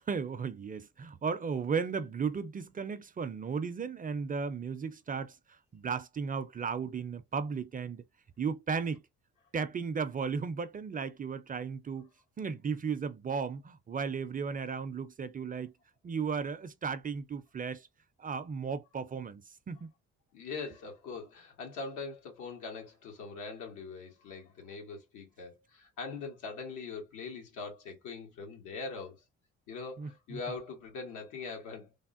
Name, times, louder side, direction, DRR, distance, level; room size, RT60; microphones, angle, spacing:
voice 1, 0.1-5.4 5.7-8.0 8.4-9.0 9.5-12.1 12.4-15.7 16.0-17.9 18.2-19.9 30.0-30.4, right 5 dB, 30° right, 0.4 m, -35 dB
voice 2, 20.3-29.2 29.7-31.9, left 4 dB, 90° left, 1.3 m, -42 dB
3.4 x 2.1 x 2.4 m
cardioid pair, 90°, 30 cm